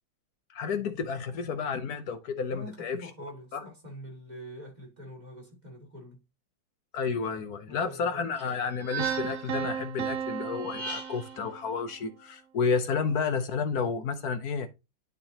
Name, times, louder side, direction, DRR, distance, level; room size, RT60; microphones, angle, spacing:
voice 1, 0.5-3.0 3.5-3.6 6.9-14.7, left 5 dB, 60° left, 1.1 m, -31 dB
voice 2, 2.5-6.2 7.7-8.2, equal, 20° right, 2.5 m, -45 dB
sound 1, 8.4-9.6 10.5-11.4, right 5 dB, 50° right, 2.6 m, -37 dB
Piano, 9.0-11.9, right 8 dB, 80° right, 0.7 m, -35 dB
11.5 x 3.9 x 2.8 m
omnidirectional pair, 2.2 m